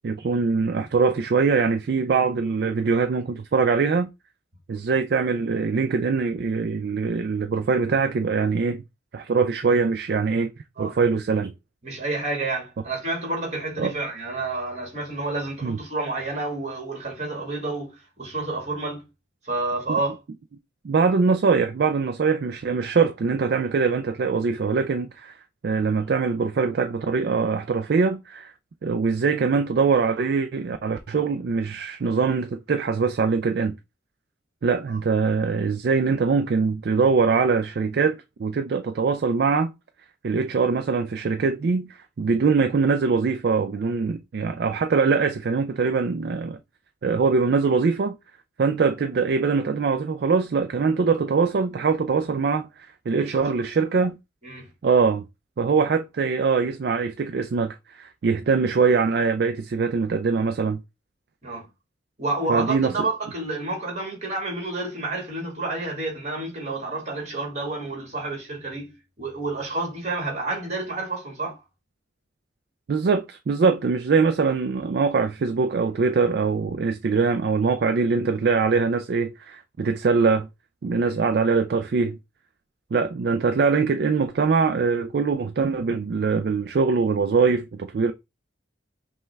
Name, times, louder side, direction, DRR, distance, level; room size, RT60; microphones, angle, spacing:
voice 1, 0.0-4.1 4.7-8.8 9.1-10.5 10.8-11.5 13.8-13.9 15.6-15.8 20.8-25.4 25.6-28.5 28.8-33.8 34.6-39.7 40.2-46.6 47.0-48.2 48.6-54.2 54.8-55.2 55.6-60.8 62.5-62.9 72.9-80.5 80.8-82.2 82.9-88.1, right 5 dB, 55° right, 0.3 m, -22 dB
voice 2, 11.8-19.1 19.4-20.2 34.9-35.0 53.2-53.4 54.4-54.7 61.4-61.7 62.2-71.6, right 2 dB, 35° right, 1.7 m, -29 dB
5.3 x 2.3 x 3.3 m
head